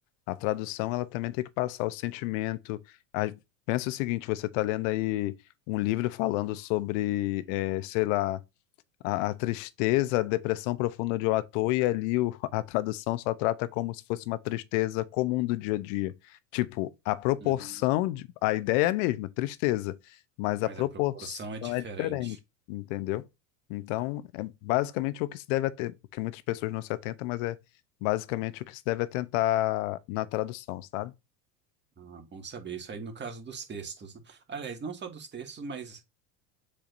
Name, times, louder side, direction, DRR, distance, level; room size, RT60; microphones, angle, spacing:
voice 1, 0.3-2.8 3.1-3.4 3.7-5.3 5.7-8.4 9.0-16.1 16.5-22.4 22.7-23.3 23.7-27.6 28.0-31.1, left 17 dB, 60° left, 0.9 m, -29 dB
voice 2, 17.4-17.8 20.6-20.8 21.1-22.4 32.0-36.0, right 5 dB, 25° right, 2.0 m, -40 dB
7.2 x 4.9 x 2.6 m
hypercardioid pair, 90°, 42 cm